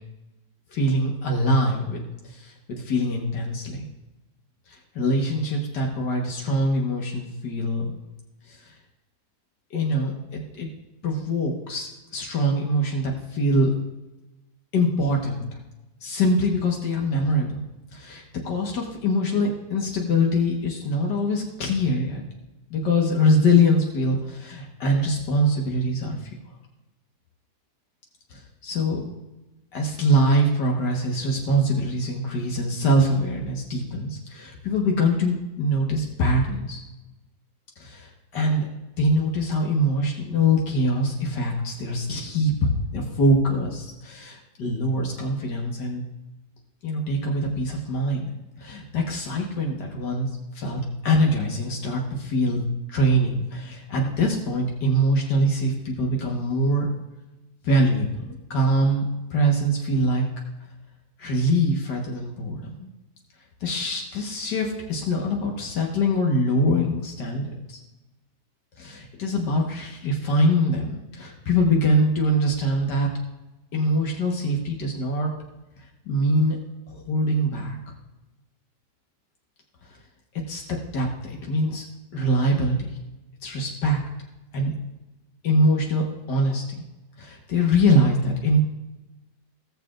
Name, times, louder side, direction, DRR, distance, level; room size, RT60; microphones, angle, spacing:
voice 1, 0.7-2.0 2.3-3.9 5.0-8.0 9.7-10.7 11.0-13.7 14.7-15.5 16.0-17.6 17.9-22.2 22.7-26.2 28.3-29.0 29.7-36.8 37.8-38.7 39.0-46.0 46.8-50.3 50.6-52.6 52.9-56.9 57.6-59.1 59.3-60.2 61.2-62.9 63.6-67.8 68.8-73.1 73.7-75.3 76.1-76.6 76.9-77.8 80.5-80.6 80.9-81.8 82.1-82.9 83.4-84.0 84.5-84.7 85.4-86.8 87.2-88.7, equal, 90° left, 0 dB, 2.0 m, -23 dB
17.0 x 6.8 x 2.4 m, 1.0 s
omnidirectional pair, 1.8 m